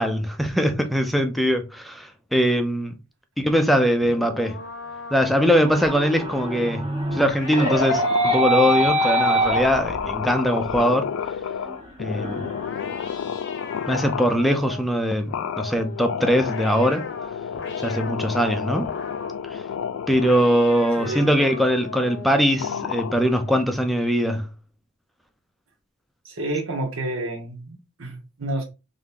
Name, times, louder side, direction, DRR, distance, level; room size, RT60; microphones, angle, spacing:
voice 1, 0.0-2.9 3.4-4.6 5.1-6.8 7.1-11.1 12.0-12.4 13.9-17.0 17.8-18.9 19.5-19.6 20.1-24.5, equal, ahead, 0.5 m, -21 dB
sound 1, 4.0-11.8 12.4-14.9 15.3-18.3 18.8-19.5 20.1-22.9, left 4 dB, 60° left, 0.8 m, -38 dB
sound 2, 5.6-10.3 10.7-10.8 11.3-11.4 11.7-12.9, right 1 dB, 25° right, 0.9 m, -24 dB
sound 3, 7.5-14.4 15.3-20.9 21.4-21.7 22.6-23.5, left 7 dB, 75° left, 0.3 m, -31 dB
voice 2, 21.0-21.3 26.2-28.6, right 1 dB, 70° right, 1.0 m, -29 dB
3.5 x 2.7 x 3.7 m
head